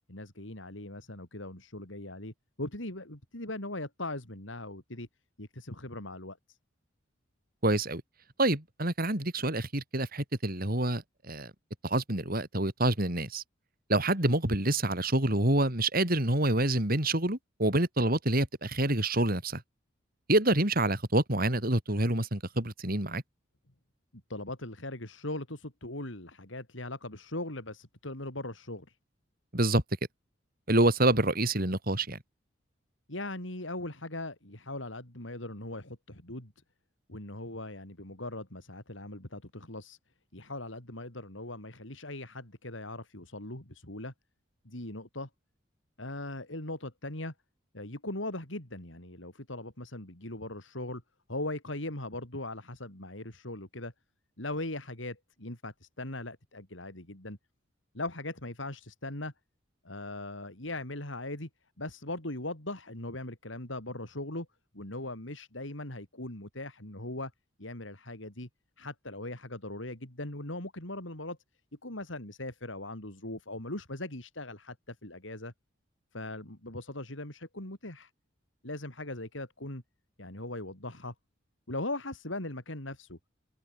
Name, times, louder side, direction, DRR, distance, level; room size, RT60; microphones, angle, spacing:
voice 1, 0.1-5.1 5.4-6.6 24.3-29.0 33.1-36.5 37.1-40.0 40.3-44.1 44.6-45.3 46.0-47.3 47.7-51.0 51.3-53.9 54.4-57.4 57.9-59.3 59.8-61.5 61.8-64.5 64.7-67.3 67.6-68.5 68.8-71.4 71.8-75.5 76.1-78.1 78.6-79.8 80.2-81.1 81.7-83.2, left 2 dB, 70° left, 5.0 m, -39 dB
voice 2, 7.6-8.0 8.4-11.5 11.8-13.4 13.9-19.6 20.3-23.2 29.5-29.8 30.7-32.2, right 1 dB, 50° right, 4.7 m, -27 dB
head